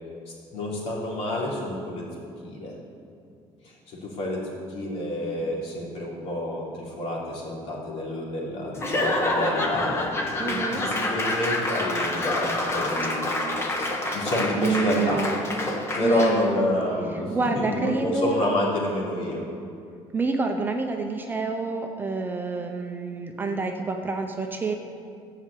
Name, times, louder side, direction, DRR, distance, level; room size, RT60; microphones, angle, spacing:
voice 1, 0.5-2.1 2.4-2.7 3.6-9.9 10.4-13.3 14.1-15.2 15.9-19.4, left 1 dB, 65° left, -4 dB, 3.4 m, -28 dB
Laughter / Applause / Crowd, 8.7-16.5, left 2 dB, 25° left, 1.2 m, -27 dB
voice 2, 10.4-10.8 14.6-15.4 16.0-16.7 17.3-18.4 20.1-24.8, right 4 dB, 20° right, 4 dB, 0.6 m, -28 dB
13.0 x 5.8 x 8.4 m, 2.4 s
cardioid pair, 170°, 11 cm